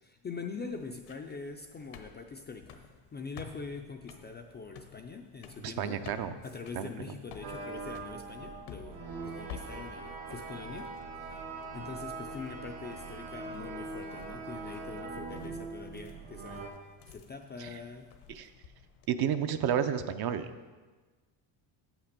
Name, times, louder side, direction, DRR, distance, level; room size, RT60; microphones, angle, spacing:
voice 1, 0.0-6.0 6.4-10.9 11.1-11.4 11.7-16.6 17.1-18.1 20.6-20.7, left 4 dB, 25° left, 3 dB, 0.3 m, -43 dB
sound 1, 0.6-19.1, left 7 dB, 85° left, 1.0 m, -52 dB
voice 2, 5.6-6.3 6.7-7.1 17.6-17.7 18.3-18.5 19.1-20.5, right 9 dB, 50° right, 10 dB, 0.6 m, -31 dB
sound 2, 7.4-16.7, right 3 dB, 70° right, 1.6 m, -42 dB
7.8 x 5.9 x 6.6 m, 1.3 s
cardioid pair, 140°, 49 cm